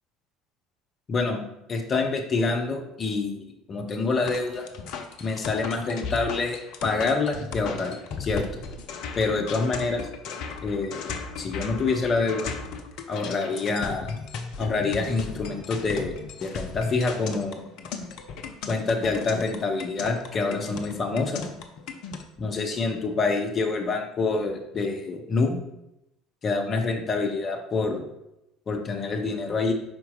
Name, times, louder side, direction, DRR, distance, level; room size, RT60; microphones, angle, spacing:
voice 1, 1.1-1.4 1.7-4.7 5.2-7.9 8.2-8.5 9.2-10.1 10.6-11.0 11.4-12.5 13.1-14.1 14.6-17.6 18.7-21.4 22.4-25.6 26.4-28.1 28.7-29.7, left 3 dB, 35° left, 3 dB, 1.0 m, -26 dB
sound 1, 4.3-22.2, left 5 dB, 55° left, 0.6 m, -36 dB
5.4 x 4.5 x 3.8 m, 0.86 s
figure-of-eight pair, 65°, 0 cm